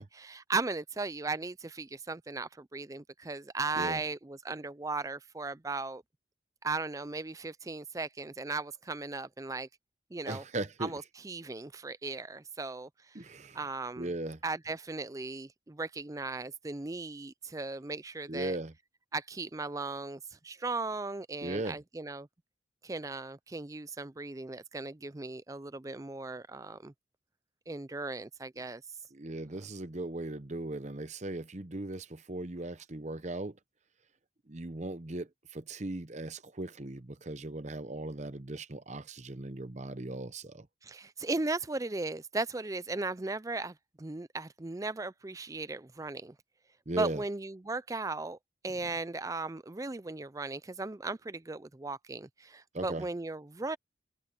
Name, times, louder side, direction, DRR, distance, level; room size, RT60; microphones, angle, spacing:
voice 1, 0.0-6.0 6.6-9.7 10.1-10.4 10.8-13.2 13.5-14.1 14.4-18.6 19.1-22.3 22.8-26.9 27.7-28.8 40.8-46.3 46.9-48.4 48.6-53.8, right 3 dB, 15° right, 0.4 m, -37 dB
voice 2, 10.3-11.0 13.1-13.6 14.0-14.4 18.3-18.7 21.4-21.8 29.1-33.6 34.5-40.7 46.9-47.2 52.7-53.1, right 2 dB, 35° right, 0.9 m, -38 dB
head